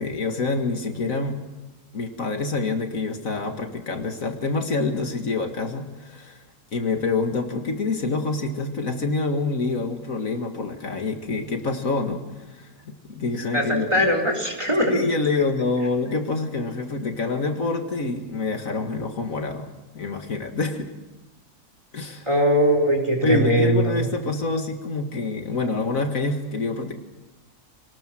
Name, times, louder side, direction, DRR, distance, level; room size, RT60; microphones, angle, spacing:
voice 1, 0.0-1.4 1.9-6.4 6.7-14.1 14.9-20.9 21.9-22.3 23.2-26.9, left 3 dB, 65° left, 5 dB, 2.2 m, -26 dB
voice 2, 13.5-15.1 22.3-24.1, equal, 20° right, 2 dB, 4.1 m, -21 dB
27.0 x 19.5 x 7.7 m, 1.1 s
omnidirectional pair, 1.5 m